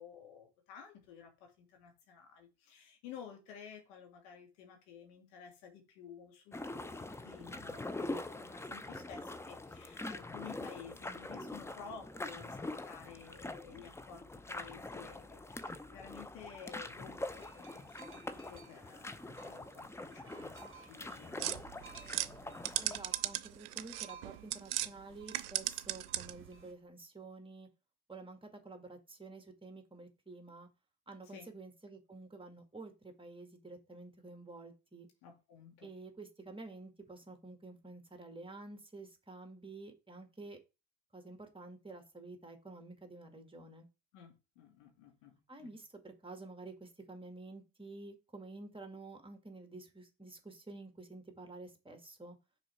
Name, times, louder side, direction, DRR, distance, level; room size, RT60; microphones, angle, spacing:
voice 1, 0.0-12.6 12.9-18.2 18.5-21.5 31.3-31.5 35.2-35.9 44.1-45.8, left 7 dB, 65° left, 2.0 m, -53 dB
sound 1, 6.5-23.0, left 2 dB, 5° left, 0.6 m, -44 dB
sound 2, 17.3-26.7, right 6 dB, 25° right, 1.6 m, -58 dB
sound 3, 21.4-24.9 25.2-26.5, right 14 dB, 70° right, 0.7 m, -37 dB
voice 2, 22.8-27.7 28.1-30.7 31.1-35.1 35.8-40.6 41.1-43.9 45.5-52.4, right 3 dB, 10° right, 2.0 m, -50 dB
6.1 x 4.0 x 4.5 m
figure-of-eight pair, 60°, 46 cm